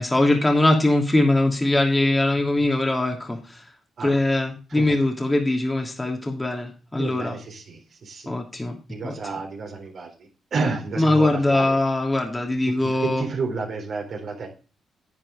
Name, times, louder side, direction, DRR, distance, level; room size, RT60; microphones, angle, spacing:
voice 1, 0.0-3.6 4.0-7.4 8.3-8.8 9.0-9.2 11.0-13.2, left 2 dB, 20° left, 2 dB, 2.8 m, -21 dB
voice 2, 7.0-8.3 8.9-10.1 10.5-11.8 12.8-14.5, right 4 dB, 60° right, 1 dB, 3.7 m, -30 dB
11.0 x 8.8 x 3.6 m, 0.34 s
hypercardioid pair, 40°, 0 cm